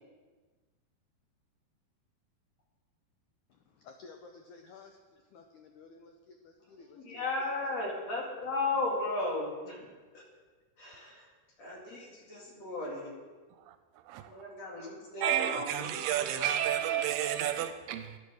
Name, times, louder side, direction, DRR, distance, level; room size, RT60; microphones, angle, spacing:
voice 1, 3.8-7.2, left 4 dB, 85° left, 1.7 m, -54 dB
voice 2, 6.9-9.9 10.1-10.2 10.8-11.3 11.6-13.1 14.3-16.5 16.8-17.0, left 2 dB, 45° left, 3.1 m, -35 dB
voice 3, 15.2-18.2, right 11 dB, 85° right, 2.6 m, -31 dB
11.5 x 11.5 x 6.4 m
omnidirectional pair, 4.5 m